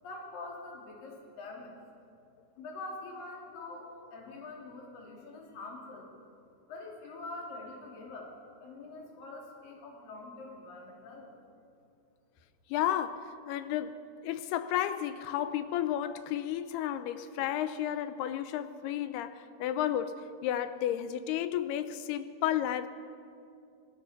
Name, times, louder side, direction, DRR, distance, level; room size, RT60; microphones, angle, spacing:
voice 1, 0.0-1.8 2.6-6.1 6.7-8.3 8.6-11.3, left 2 dB, 55° left, -1 dB, 4.7 m, -45 dB
voice 2, 12.7-22.9, left 11 dB, 80° left, 12 dB, 2.6 m, -32 dB
26.5 x 20.0 x 6.0 m, 2.5 s
omnidirectional pair, 4.8 m